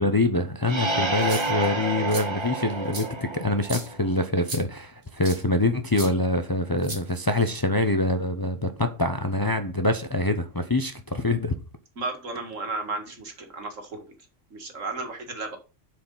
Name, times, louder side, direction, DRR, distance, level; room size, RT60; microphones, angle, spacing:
voice 1, 0.0-11.5, left 2 dB, 25° left, 0.5 m, -25 dB
sound 1, 0.6-4.2, right 2 dB, 25° right, 0.8 m, -29 dB
sound 2, 1.1-1.7 2.1-2.2 2.9-3.1 3.6-3.9 4.5-4.6 5.2-5.4 5.9-6.1 6.8-7.4, right 3 dB, 70° right, 2.2 m, -35 dB
voice 2, 12.0-14.0 14.5-15.6, right 3 dB, 90° right, 2.2 m, -33 dB
7.3 x 4.8 x 5.4 m
omnidirectional pair, 1.3 m